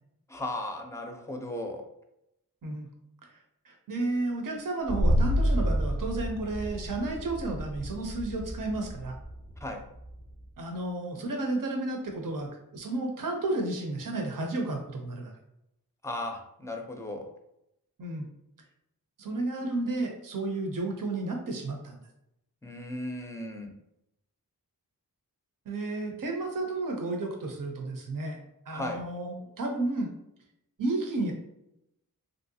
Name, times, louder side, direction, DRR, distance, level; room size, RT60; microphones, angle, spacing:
voice 1, 0.3-1.8 9.6-9.8 16.0-17.3 22.6-23.7 28.7-29.0, left 1 dB, 10° left, 3 dB, 0.5 m, -36 dB
voice 2, 3.6-9.2 10.6-15.3 18.0-18.3 19.2-22.0 25.7-28.4 28.7-30.1 30.8-31.3, right 2 dB, 65° right, 2 dB, 0.6 m, -32 dB
sound 1, 4.9-10.4, equal, 90° right, 0.9 m, -29 dB
3.1 x 2.6 x 2.7 m, 0.82 s
wide cardioid pair, 75°, 36 cm